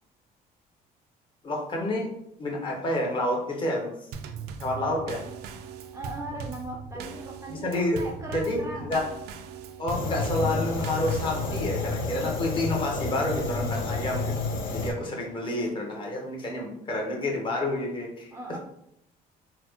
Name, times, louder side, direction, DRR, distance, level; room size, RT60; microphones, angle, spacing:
voice 1, 1.4-2.1 2.4-3.9 4.6-5.2 7.5-8.0 8.3-9.0 9.8-18.3, left 1 dB, 30° left, 0 dB, 0.8 m, -29 dB
Drum kit / Snare drum / Bass drum, 4.1-11.8, right 6 dB, 90° right, 0.4 m, -40 dB
voice 2, 5.9-9.0 18.3-18.6, right 2 dB, 20° right, 0 dB, 0.4 m, -38 dB
Fire, 9.9-14.9, left 3 dB, 65° left, 0.6 m, -30 dB
4.0 x 2.0 x 2.9 m, 0.78 s
cardioid pair, 145°, 16 cm